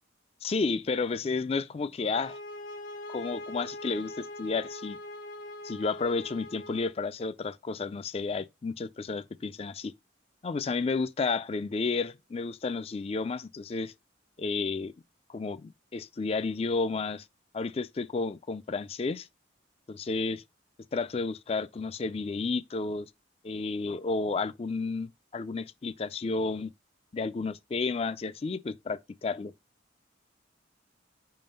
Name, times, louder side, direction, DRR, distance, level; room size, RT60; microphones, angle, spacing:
voice 1, 0.4-2.4 3.1-5.0 5.6-9.9 10.4-13.9 14.4-14.9 15.3-17.3 17.5-19.3 19.9-20.4 20.9-23.1 23.4-26.7 27.1-29.5, left 4 dB, 30° left, 0.3 m, -31 dB
sound 1, 2.0-7.0, left 1 dB, 80° left, 1.2 m, -42 dB
5.0 x 3.8 x 5.2 m
head